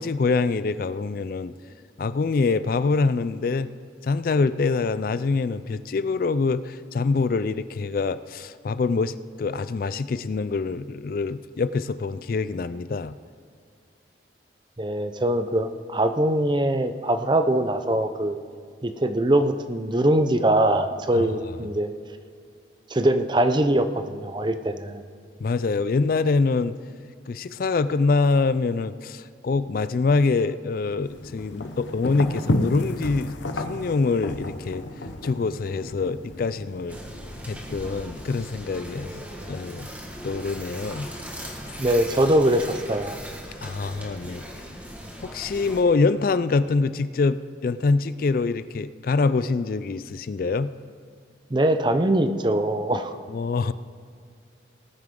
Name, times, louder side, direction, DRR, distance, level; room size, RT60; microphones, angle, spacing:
voice 1, 0.0-1.5 2.0-3.7 4.0-13.1 21.1-21.3 25.4-26.8 27.3-34.8 35.2-37.0 37.5-39.1 39.5-39.9 40.2-41.1 43.6-44.4 45.2-50.7 53.3-53.7, left 4 dB, 50° left, 14 dB, 0.3 m, -25 dB
voice 2, 14.8-18.4 18.8-21.9 22.9-25.0 41.8-43.2 51.5-53.1, right 1 dB, 25° right, 9 dB, 0.6 m, -22 dB
sound 1, 31.0-38.2, left 1 dB, 80° left, 1.0 m, -32 dB
sound 2, 36.9-45.8, equal, 10° right, 1.5 m, -38 dB
19.0 x 9.5 x 3.7 m, 2.3 s
head